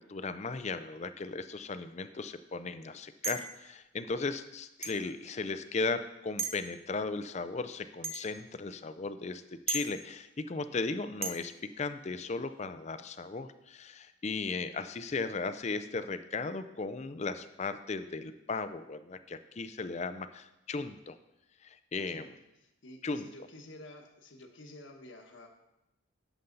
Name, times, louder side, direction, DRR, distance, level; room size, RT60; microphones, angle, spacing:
voice 1, 0.0-9.4 9.7-21.2 21.6-22.3 23.0-23.2, left 3 dB, 35° left, 11 dB, 0.4 m, -36 dB
sound 1, 3.2-3.6 4.8-5.0 6.4-6.6 8.0-8.3 9.7-9.9 11.2-11.4, right 3 dB, 30° right, 0.6 m, -35 dB
voice 2, 22.6-25.5, left 1 dB, 60° left, 4 dB, 1.2 m, -50 dB
11.0 x 6.9 x 3.9 m, 0.93 s
head